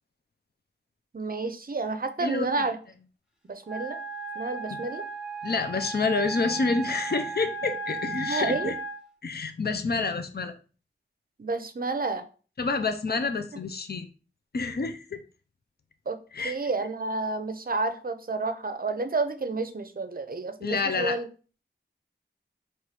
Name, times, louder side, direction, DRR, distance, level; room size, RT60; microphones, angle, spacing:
voice 1, 1.1-2.8 3.5-4.0 4.3-5.0 8.3-8.7 11.4-12.2 16.1-16.2 16.4-21.3, right 3 dB, 50° right, 10 dB, 0.6 m, -30 dB
Wind instrument woodwind instrument, 3.6-9.0, right 3 dB, 5° right, 1.0 m, -35 dB
voice 2, 5.4-8.8 9.2-10.5 12.6-14.1 14.5-15.2 16.3-16.5 20.6-21.2, left 4 dB, 55° left, 8 dB, 0.5 m, -28 dB
4.5 x 3.1 x 3.3 m, 0.38 s
wide cardioid pair, 50°, 20 cm